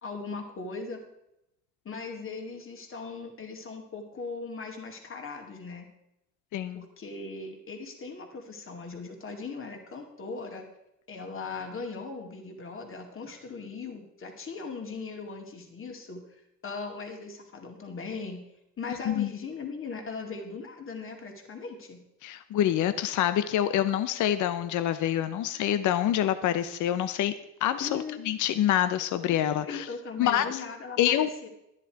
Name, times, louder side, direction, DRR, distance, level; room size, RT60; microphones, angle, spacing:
voice 1, 0.0-1.0 1.8-5.9 6.7-10.7 11.1-16.2 16.6-18.4 18.8-22.0 27.8-28.2 29.6-31.5, left 4 dB, 45° left, 2 dB, 2.3 m, -39 dB
voice 2, 6.5-6.8 19.1-19.3 22.2-27.3 27.6-29.9 30.2-30.6 31.0-31.3, left 11 dB, 75° left, 12 dB, 0.7 m, -26 dB
11.5 x 9.8 x 4.6 m, 0.84 s
cardioid pair, 90°, 30 cm